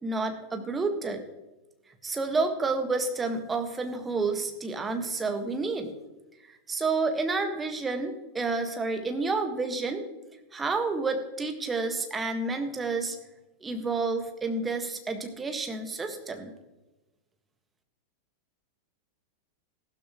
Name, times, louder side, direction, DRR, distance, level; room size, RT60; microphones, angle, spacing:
voice 1, 0.0-1.2 2.0-5.9 6.4-10.0 10.5-13.2 13.6-16.5, right 3 dB, 15° right, 5 dB, 1.6 m, -30 dB
15.0 x 12.5 x 3.1 m, 1.0 s
figure-of-eight pair, 90°, 0 cm